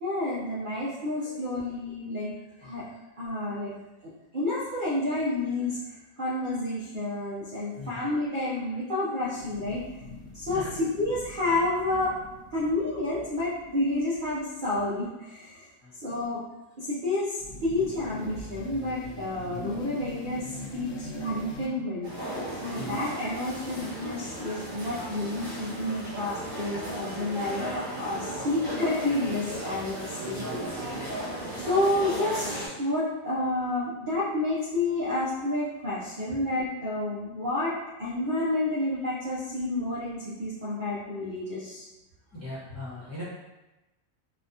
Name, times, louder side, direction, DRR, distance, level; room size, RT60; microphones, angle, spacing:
voice 1, 0.0-2.3 2.6-2.8 3.2-3.7 4.0-10.0 10.3-12.1 12.5-15.7 15.9-16.4 16.8-22.1 22.6-27.6 28.0-30.4 31.6-41.9, left 2 dB, 50° right, -9 dB, 0.7 m, -30 dB
voice 2, 7.7-8.1 10.5-10.7 15.8-15.9 22.7-23.0 30.3-30.6 36.3-36.4 42.3-43.2, left 1 dB, 15° left, -10 dB, 0.9 m, -40 dB
sound 1, 9.4-14.4 17.4-21.7, left 2 dB, 75° left, 0.9 m, -42 dB
sound 2, 22.0-32.7, right 1 dB, 80° right, 1.9 m, -35 dB
4.1 x 2.3 x 2.7 m, 1.0 s
omnidirectional pair, 1.4 m